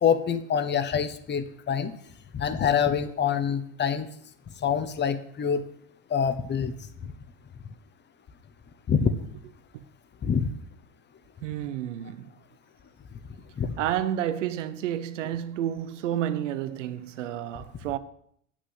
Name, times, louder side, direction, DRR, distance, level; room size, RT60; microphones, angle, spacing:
voice 1, 0.0-1.9 2.3-4.1 4.6-5.6 6.1-6.7 8.9-9.1 10.2-10.5 13.6-13.7, left 7 dB, 30° left, 1.1 m, -25 dB
voice 2, 11.4-12.3 13.8-18.0, right 11 dB, 80° right, 0.9 m, -30 dB
8.1 x 6.2 x 8.0 m
hypercardioid pair, 85°, 36 cm